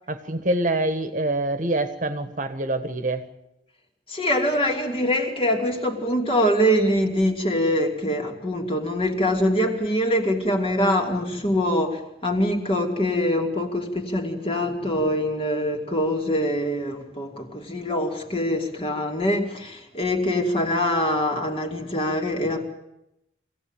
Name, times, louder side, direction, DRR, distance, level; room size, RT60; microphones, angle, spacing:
voice 1, 0.1-3.3, right 2 dB, 45° right, 1.5 m, -25 dB
voice 2, 4.1-22.7, equal, 30° left, 2.9 m, -24 dB
25.0 x 17.0 x 9.1 m
head